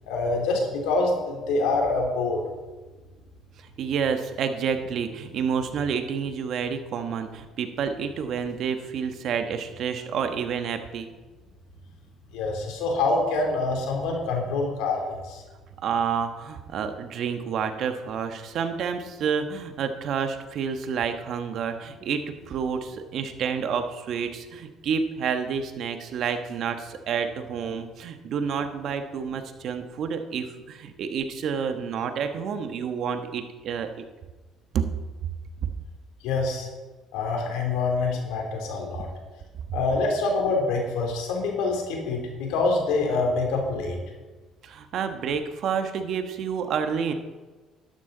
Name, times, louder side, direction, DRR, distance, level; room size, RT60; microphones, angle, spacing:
voice 1, 0.1-2.4 12.3-15.4 36.2-36.7 37.1-39.1 39.7-44.0, left 3 dB, 85° left, 1 dB, 3.0 m, -26 dB
voice 2, 3.6-11.1 15.8-33.9 34.7-34.8 44.6-47.1, right 6 dB, 65° right, 7 dB, 1.2 m, -29 dB
12.0 x 12.0 x 3.9 m, 1.2 s
supercardioid pair, 85°, 0 cm